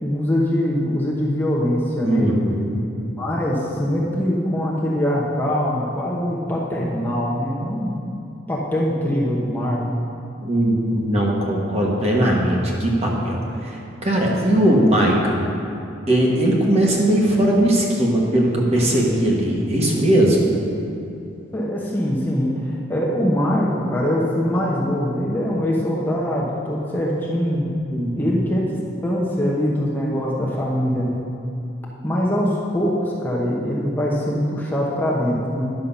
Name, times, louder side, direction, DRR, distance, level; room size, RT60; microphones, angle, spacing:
voice 1, 0.0-2.3 3.0-7.9 8.5-9.9 21.5-27.7 28.2-28.6 29.0-31.3 32.0-35.8, equal, 10° left, -5 dB, 0.9 m, -23 dB
voice 2, 2.0-2.8 10.4-15.4 16.1-20.4 27.9-28.4, right 1 dB, 30° right, -3 dB, 1.4 m, -19 dB
10.5 x 6.5 x 5.5 m, 2.6 s
head